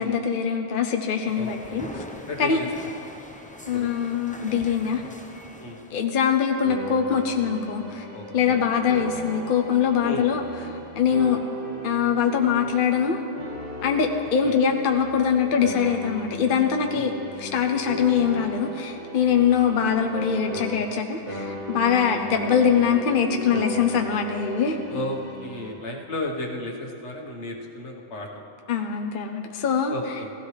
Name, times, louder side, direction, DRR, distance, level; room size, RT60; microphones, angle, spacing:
voice 1, 0.0-2.0 2.4-2.6 3.7-5.0 5.9-8.1 8.3-10.4 11.0-11.4 11.8-13.2 13.8-17.1 17.4-24.8 28.7-29.9, left 7 dB, 50° left, 3 dB, 0.9 m, -23 dB
sound 1, 1.2-6.2, left 1 dB, 10° left, 0.6 m, -42 dB
voice 2, 1.4-1.9 2.3-2.7 3.7-3.9 5.6-5.8 8.1-8.6 10.0-10.3 14.4-14.6 16.9-17.2 24.9-28.3 29.9-30.3, left 1 dB, 80° left, 0 dB, 1.6 m, -33 dB
sound 2, 6.6-21.0 21.3-25.7, right 1 dB, 85° right, 2.3 m, -36 dB
16.5 x 15.5 x 3.3 m, 2.9 s
omnidirectional pair, 1.2 m